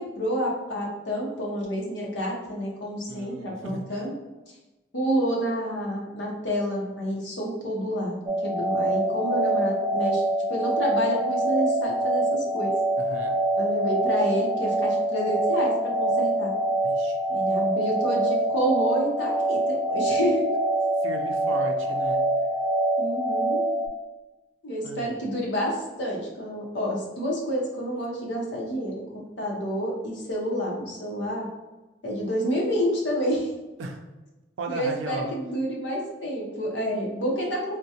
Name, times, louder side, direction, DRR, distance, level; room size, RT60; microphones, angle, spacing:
voice 1, 0.0-4.1 4.9-10.2 10.5-12.7 13.6-16.5 17.3-20.5 23.0-23.6 24.6-28.9 29.4-31.5 32.0-33.5 34.7-37.8, equal, 70° left, -2 dB, 0.7 m, -29 dB
voice 2, 3.1-4.0 13.0-13.3 16.8-17.2 21.0-22.2 24.8-25.1 33.8-34.0 34.6-35.3, right 2 dB, 90° right, 4 dB, 0.4 m, -35 dB
sound 1, 8.3-23.9, right 1 dB, 25° right, 0.4 m, -25 dB
3.6 x 2.1 x 2.8 m, 1.1 s
head